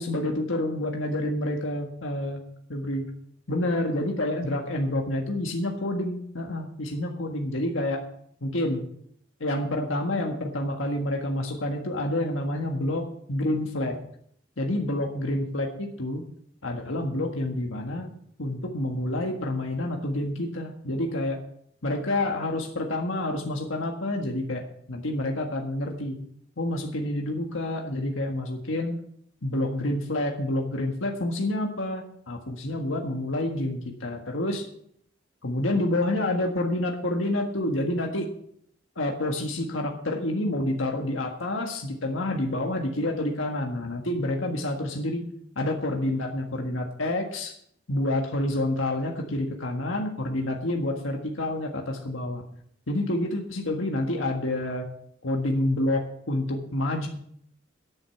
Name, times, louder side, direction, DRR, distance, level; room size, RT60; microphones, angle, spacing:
voice 1, 0.0-2.4 2.7-3.0 3.5-8.0 8.4-8.9 9.4-14.0 14.6-16.3 16.6-18.1 18.4-21.4 21.8-26.2 26.6-29.0 29.4-34.7 35.4-38.3 38.9-45.3 45.5-47.6 47.9-52.4 52.9-54.9 55.2-57.1, left 1 dB, 85° left, 2 dB, 1.6 m, -28 dB
9.8 x 9.0 x 7.2 m, 0.68 s
head